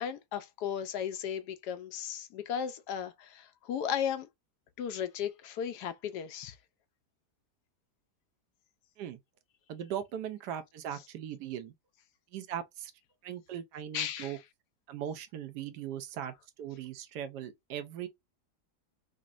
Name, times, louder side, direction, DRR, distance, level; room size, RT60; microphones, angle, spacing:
voice 1, 0.0-4.3 4.8-6.6 13.9-14.4, left 8 dB, 80° left, 1.2 m, -35 dB
voice 2, 9.7-11.7 12.3-12.9 13.2-14.4 14.9-18.1, right 10 dB, 90° right, 1.2 m, -39 dB
5.0 x 2.1 x 2.5 m
omnidirectional pair, 1.8 m